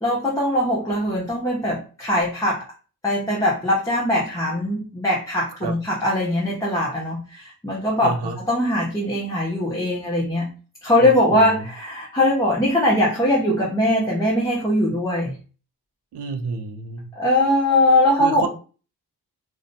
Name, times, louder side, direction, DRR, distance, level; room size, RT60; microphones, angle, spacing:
voice 1, 0.0-2.6 3.0-10.5 10.8-15.4 17.1-18.5, left 1 dB, 10° left, -3 dB, 0.7 m, -21 dB
voice 2, 8.0-8.4 11.0-11.6 16.1-17.1 18.2-18.5, right 4 dB, 75° right, 6 dB, 0.6 m, -29 dB
2.5 x 2.1 x 2.6 m, 0.37 s
cardioid pair, 55°, 40 cm